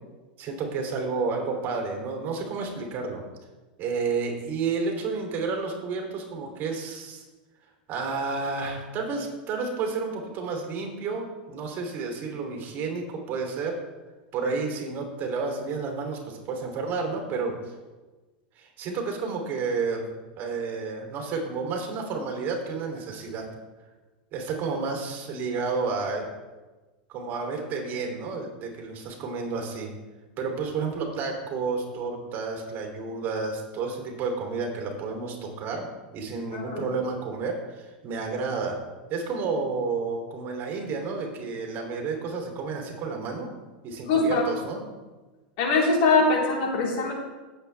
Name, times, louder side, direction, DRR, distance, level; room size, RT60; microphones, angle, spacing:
voice 1, 0.4-3.2 3.8-7.2 7.9-13.8 14.3-17.7 18.5-20.1 20.4-23.4 24.3-26.3 27.1-29.9 30.4-35.9 36.1-38.8 39.1-43.5 43.8-44.8, right 4 dB, 45° right, 2 dB, 3.1 m, -31 dB
voice 2, 36.5-36.9 44.1-44.5 45.6-47.1, left 3 dB, 60° left, -3 dB, 3.9 m, -22 dB
17.0 x 7.9 x 3.4 m, 1.2 s
hypercardioid pair, 110°, 5 cm